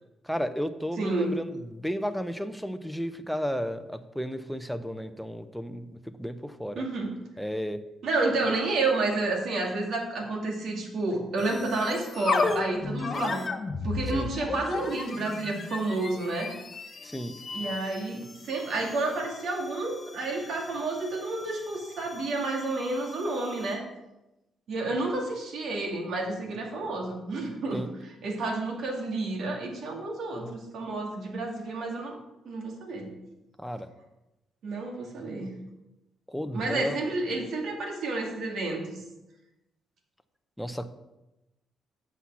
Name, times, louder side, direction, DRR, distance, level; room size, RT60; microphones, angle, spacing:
voice 1, 0.2-6.8 7.4-7.8 14.1-14.3 17.0-17.3 27.7-27.9 33.6-33.9 36.3-37.0 40.6-40.9, equal, ahead, 9 dB, 0.7 m, -33 dB
voice 2, 1.0-1.4 6.8-7.1 8.0-13.4 13.8-16.5 17.5-23.8 24.7-27.8 28.2-32.2 32.5-33.1 34.6-35.5 36.5-39.0, right 2 dB, 70° right, 1 dB, 2.2 m, -30 dB
sound 1, 11.4-23.9, left 4 dB, 40° left, 1.1 m, -35 dB
8.1 x 5.8 x 6.1 m, 0.96 s
cardioid pair, 95°, 0 cm